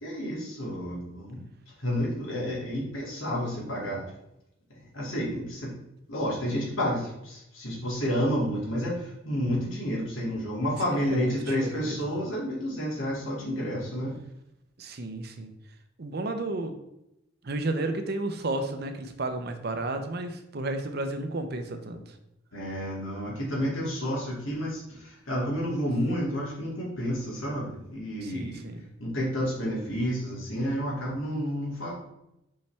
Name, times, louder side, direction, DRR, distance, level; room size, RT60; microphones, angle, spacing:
voice 1, 0.0-1.4 1.8-4.0 4.9-5.7 6.1-14.1 22.5-28.6 29.0-31.9, equal, 90° left, -4 dB, 2.5 m, -30 dB
voice 2, 10.8-12.0 14.8-15.5 16.0-16.7 17.4-22.0 28.2-28.8, right 2 dB, 55° right, 7 dB, 0.7 m, -32 dB
5.6 x 5.4 x 3.4 m, 0.85 s
head